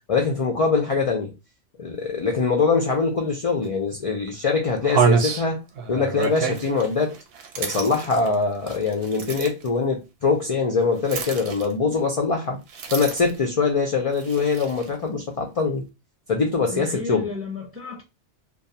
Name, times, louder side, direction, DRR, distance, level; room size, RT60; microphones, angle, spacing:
voice 1, 0.1-1.3 1.8-5.6 5.9-7.2 7.6-12.6 12.9-15.8 16.3-17.3, left 4 dB, 65° left, 0.3 m, -23 dB
sound 1, 3.6-3.7 4.3-4.4 4.8-9.7 11.0-12.0 12.7-13.5 14.1-14.9, right 5 dB, 65° right, 0.7 m, -27 dB
voice 2, 16.7-18.0, left 3 dB, 15° right, 0.4 m, -32 dB
2.3 x 2.2 x 2.6 m
omnidirectional pair, 1.2 m